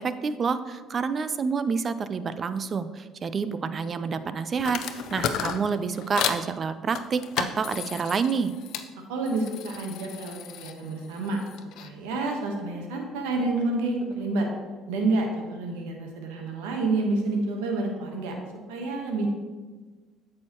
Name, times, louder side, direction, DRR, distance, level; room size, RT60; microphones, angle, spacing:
voice 1, 0.0-4.8 5.1-8.5, right 5 dB, 40° right, 13 dB, 0.5 m, -28 dB
sound 1, 4.6-6.4 6.9-8.9 9.2-11.9, left 9 dB, 70° left, 0.6 m, -34 dB
voice 2, 9.1-11.4 11.8-14.5 14.9-18.4 18.7-19.3, right 2 dB, 85° right, 2 dB, 1.2 m, -28 dB
8.6 x 6.4 x 3.0 m, 1.3 s
hypercardioid pair, 70°, 0 cm